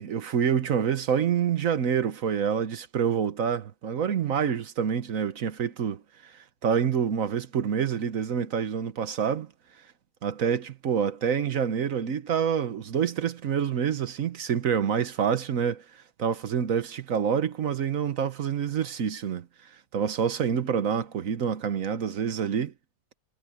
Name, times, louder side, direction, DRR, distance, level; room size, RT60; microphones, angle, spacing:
voice 1, 0.0-6.3 6.6-9.5 10.2-15.8 16.2-19.5 19.9-22.7, right 7 dB, 75° right, 1.5 m, -27 dB
omnidirectional pair, 1.4 m